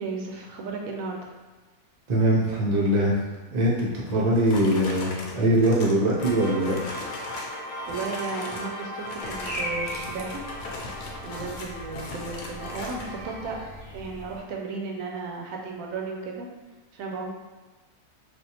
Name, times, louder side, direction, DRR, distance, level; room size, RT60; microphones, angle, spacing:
voice 1, 0.0-1.3 7.9-10.4 11.2-13.6 13.9-16.5 16.9-17.3, right 4 dB, 70° right, 0 dB, 0.9 m, -34 dB
voice 2, 2.1-3.2 3.5-6.8, right 1 dB, 45° right, -5 dB, 0.5 m, -22 dB
sound 1, 4.1-7.6 7.8-8.7 9.0-13.1, left 2 dB, 85° left, 1.2 m, -39 dB
sound 2, 6.2-13.4, equal, 65° left, 0.9 m, -38 dB
sound 3, 9.2-14.4, equal, 15° left, 1.3 m, -39 dB
3.3 x 2.5 x 2.9 m, 1.2 s
omnidirectional pair, 1.7 m